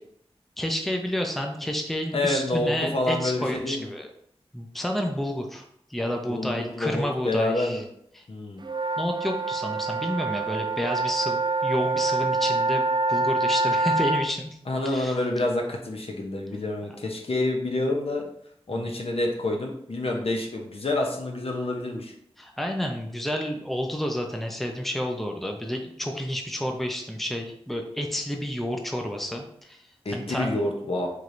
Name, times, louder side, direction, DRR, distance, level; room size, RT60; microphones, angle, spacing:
voice 1, 0.6-4.1 4.5-5.7 5.9-7.8 8.2-8.3 9.0-14.5 14.8-15.1 18.7-18.8 22.4-29.8 30.1-30.5, equal, ahead, 2 dB, 0.6 m, -30 dB
voice 2, 2.1-3.9 6.3-7.8 8.3-8.6 14.7-18.3 18.7-22.1 30.0-31.1, left 2 dB, 65° left, 1 dB, 0.8 m, -28 dB
sound 1, 8.6-14.3, right 3 dB, 45° right, 0.4 m, -26 dB
4.6 x 3.2 x 2.6 m, 0.69 s
wide cardioid pair, 60°, 10 cm